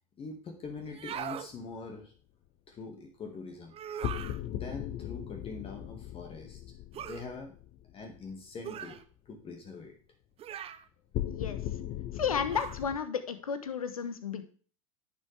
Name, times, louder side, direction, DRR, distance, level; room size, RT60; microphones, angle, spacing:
voice 1, 0.2-2.1 2.7-3.8 4.5-6.6 7.0-7.5 7.9-9.0 9.3-10.0, left 4 dB, 30° left, 3 dB, 1.8 m, -43 dB
sound 1, 0.6-1.2 4.0-8.3 11.1-13.0, left 12 dB, 50° left, 0.9 m, -38 dB
sound 2, 0.9-1.5 3.7-4.4 6.9-7.3 8.6-9.0 10.4-10.9 12.5-12.8, right 9 dB, 35° right, 0.8 m, -40 dB
voice 2, 11.2-11.6 12.1-14.4, left 7 dB, 90° left, 10 dB, 1.1 m, -33 dB
10.5 x 6.9 x 3.3 m, 0.42 s
hypercardioid pair, 85°, 18 cm